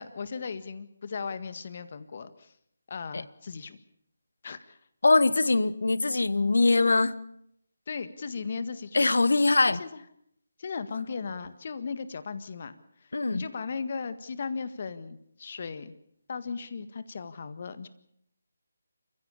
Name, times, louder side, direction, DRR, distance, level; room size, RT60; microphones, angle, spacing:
voice 1, 0.0-2.5 2.9-3.8 4.4-4.8 7.9-9.0 9.7-10.0 10.6-12.7 13.0-15.9 16.3-17.9, left 5 dB, 45° left, 12 dB, 1.7 m, -37 dB
voice 2, 5.0-7.2 8.9-9.8 13.1-13.4, left 3 dB, 70° left, 17 dB, 1.1 m, -22 dB
28.5 x 15.5 x 7.2 m, 0.73 s
figure-of-eight pair, 155°, 0 cm